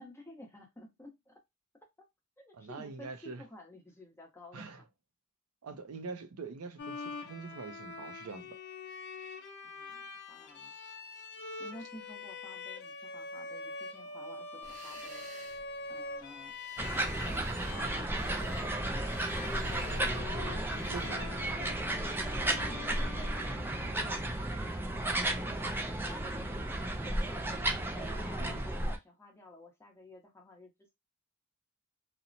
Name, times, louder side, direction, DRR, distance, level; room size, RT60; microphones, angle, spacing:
voice 1, 0.0-1.3 2.4-4.7 9.6-10.8 11.6-15.3 15.9-16.6 17.2-19.8 21.2-21.3 22.5-27.4 27.9-30.9, left 1 dB, 10° left, 0.7 m, -52 dB
voice 2, 2.5-3.4 4.5-4.8 5.6-8.6 20.9-21.2 28.4-28.7, right 4 dB, 85° right, 0.5 m, -44 dB
Bowed string instrument, 6.8-24.2, left 3 dB, 50° left, 0.5 m, -45 dB
sound 1, 14.6-21.1, right 3 dB, 35° right, 0.7 m, -55 dB
sound 2, 16.8-29.0, right 1 dB, 10° right, 0.3 m, -33 dB
2.9 x 2.0 x 2.6 m
head